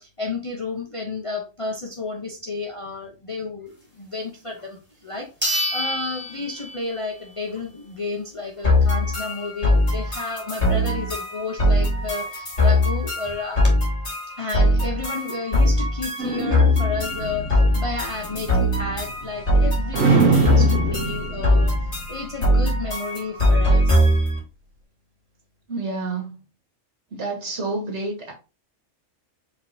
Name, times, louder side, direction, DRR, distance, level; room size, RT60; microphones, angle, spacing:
voice 1, 0.0-13.6 14.4-21.8 22.1-24.0, left 3 dB, 35° left, 1 dB, 0.6 m, -32 dB
sound 1, 4.6-4.7 5.4-7.2 7.6-7.7 12.3-12.4 12.6-12.7 13.2-13.7, equal, 10° right, 1.6 m, -28 dB
sound 2, 8.6-24.4, left 1 dB, 55° left, 2.6 m, -21 dB
sound 3, 16.2-19.6 19.9-22.6, right 4 dB, 85° right, 1.7 m, -25 dB
voice 2, 25.7-26.4 27.1-28.3, right 3 dB, 60° right, 0 dB, 1.8 m, -29 dB
5.1 x 3.8 x 2.6 m, 0.31 s
omnidirectional pair, 1.3 m